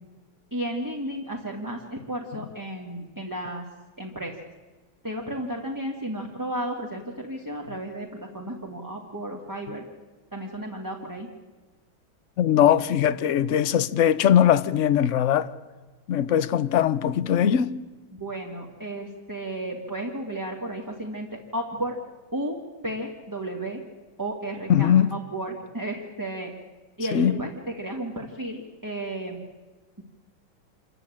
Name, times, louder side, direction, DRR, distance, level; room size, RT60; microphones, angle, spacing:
voice 1, 0.5-3.6 4.0-4.3 5.0-9.8 10.3-11.3 18.1-22.0 22.3-22.6 22.8-23.8 24.2-26.5 27.0-29.4, right 1 dB, 10° right, 2.1 m, -33 dB
voice 2, 12.4-15.5 16.1-17.7 24.7-25.1 27.1-27.4, left 9 dB, 55° left, 0.9 m, -20 dB
27.0 x 15.0 x 10.0 m
omnidirectional pair, 2.2 m